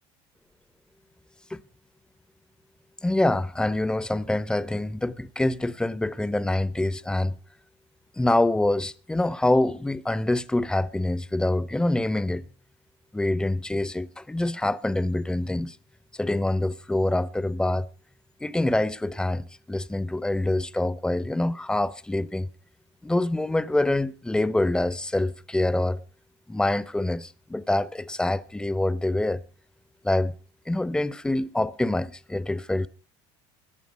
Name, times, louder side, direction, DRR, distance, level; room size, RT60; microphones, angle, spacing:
voice 1, 3.0-7.4 8.2-12.4 13.1-15.8 16.2-17.9 18.4-22.5 23.0-26.0 26.5-29.4 30.0-30.3 30.7-32.9, left 1 dB, 5° left, 0.7 m, -25 dB
17.5 x 11.0 x 5.1 m
supercardioid pair, 90°, 15 cm